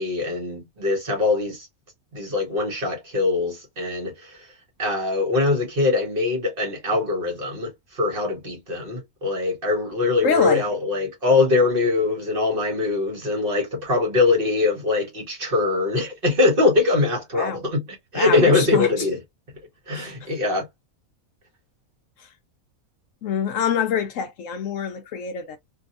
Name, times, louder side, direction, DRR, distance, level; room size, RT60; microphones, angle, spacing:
voice 1, 0.0-1.7 2.1-4.5 4.8-17.8 18.1-19.2 19.9-20.7, left 3 dB, 40° right, 1.2 m, -22 dB
voice 2, 10.2-10.7 17.3-17.6 18.1-19.1 19.9-20.3 22.2-22.3 23.2-25.6, left 7 dB, 70° left, 0.9 m, -25 dB
2.8 x 2.7 x 2.4 m
omnidirectional pair, 1.5 m